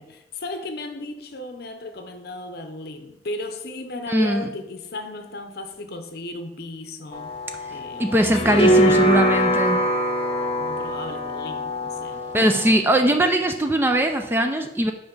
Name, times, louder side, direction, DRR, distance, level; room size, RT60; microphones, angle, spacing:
voice 1, 0.0-7.3 7.7-9.0 10.6-12.2 13.0-13.5, left 2 dB, 55° left, 0.7 m, -35 dB
voice 2, 4.1-4.5 8.0-9.8 12.3-14.9, right 1 dB, 10° right, 0.3 m, -20 dB
sound 1, 7.1-12.7, equal, 30° left, 1.0 m, -23 dB
5.5 x 4.5 x 5.2 m
head